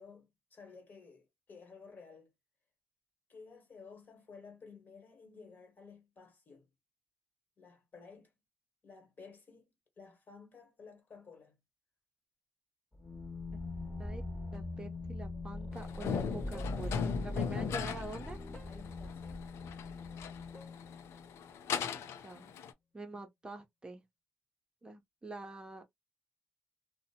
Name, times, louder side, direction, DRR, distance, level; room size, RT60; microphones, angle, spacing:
voice 1, 0.0-2.3 3.3-6.7 7.6-8.3 8.8-11.5 18.7-19.4, left 5 dB, 45° left, 1.2 m, -54 dB
sound 1, 12.9-21.5, left 2 dB, 15° left, 0.9 m, -42 dB
voice 2, 14.5-18.4 22.2-22.5 22.9-24.0 24.8-25.8, right 2 dB, 20° right, 0.6 m, -46 dB
sound 2, 15.7-22.7, left 7 dB, 85° left, 0.4 m, -38 dB
2.6 x 2.1 x 2.7 m
cardioid pair, 100°, 4 cm